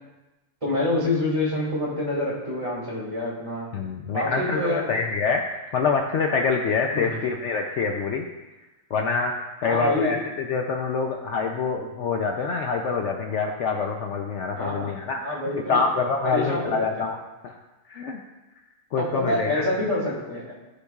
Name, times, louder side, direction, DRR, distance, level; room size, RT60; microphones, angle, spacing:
voice 1, 0.6-3.7 4.1-4.9 6.9-7.2 9.6-10.1 14.5-14.9 15.2-15.8 16.2-17.1 18.9-20.5, left 1 dB, 20° right, -7 dB, 2.6 m, -27 dB
voice 2, 3.7-8.3 8.9-9.3 9.6-15.2 15.7-17.2 17.4-17.5 17.9-18.2 18.9-19.6, left 5 dB, 65° left, 2 dB, 0.8 m, -26 dB
14.0 x 5.0 x 2.3 m, 1.1 s
omnidirectional pair, 1.5 m